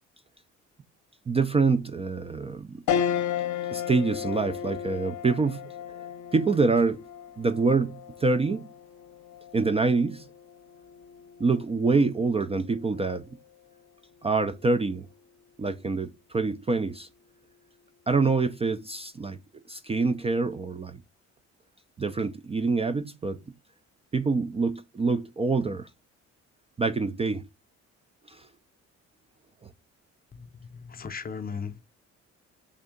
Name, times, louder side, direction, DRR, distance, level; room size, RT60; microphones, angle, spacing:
voice 1, 1.3-2.8 3.7-5.7 6.3-7.0 7.4-8.7 9.5-10.3 11.4-13.2 14.2-15.1 15.6-17.1 18.1-19.4 19.7-21.0 22.0-23.4 24.1-25.9 26.8-27.5 28.3-28.5, right 4 dB, 20° right, 0.4 m, -26 dB
sound 1, 2.9-12.5 13.0-13.1 14.4-14.8, left 9 dB, 75° left, 0.7 m, -34 dB
voice 2, 30.3-31.8, left 6 dB, 30° left, 0.6 m, -37 dB
3.5 x 2.6 x 3.6 m
cardioid pair, 90°, 30 cm